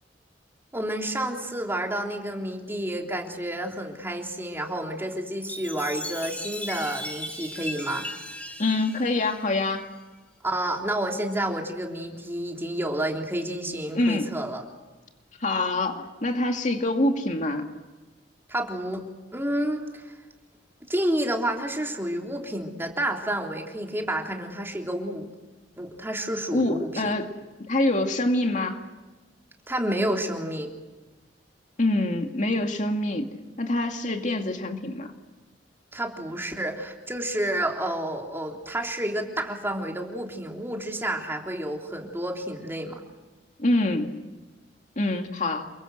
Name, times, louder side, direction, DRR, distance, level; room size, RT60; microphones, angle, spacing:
voice 1, 0.7-8.1 10.4-14.6 18.5-19.0 19.3-20.1 20.9-25.3 25.8-27.1 29.7-30.7 35.9-43.0, right 1 dB, 15° right, 1 dB, 3.5 m, -30 dB
Chime, 5.4-10.0, left 1 dB, 10° left, 4.4 m, -37 dB
voice 2, 8.6-9.9 13.9-14.3 15.4-17.7 26.5-27.4 27.7-28.8 31.8-33.3 33.6-35.1 43.6-44.1 45.0-45.7, left 2 dB, 45° left, 4 dB, 2.3 m, -25 dB
28.5 x 23.0 x 7.9 m, 1.2 s
head